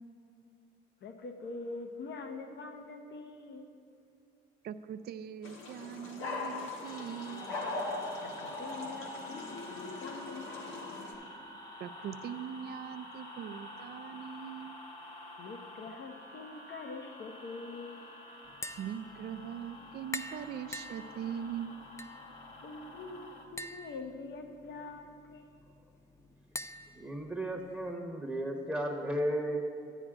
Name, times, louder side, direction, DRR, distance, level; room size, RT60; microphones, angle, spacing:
voice 1, 1.0-3.8 8.2-10.5 15.4-17.9 22.6-25.5, left 3 dB, 65° left, 5 dB, 0.9 m, -44 dB
voice 2, 4.6-7.5 11.8-14.8 18.8-21.8, right 8 dB, 55° right, 11 dB, 0.4 m, -41 dB
sound 1, 5.4-11.1, left 2 dB, 85° left, 1.3 m, -40 dB
sound 2, 6.8-23.5, left 1 dB, 45° left, 1.6 m, -49 dB
Tap, 18.5-27.9, left 2 dB, 15° left, 0.3 m, -47 dB
voice 3, 26.9-29.6, right 1 dB, ahead, 0 dB, 0.9 m, -34 dB
13.0 x 9.8 x 2.4 m, 2.5 s
cardioid pair, 90°, 20 cm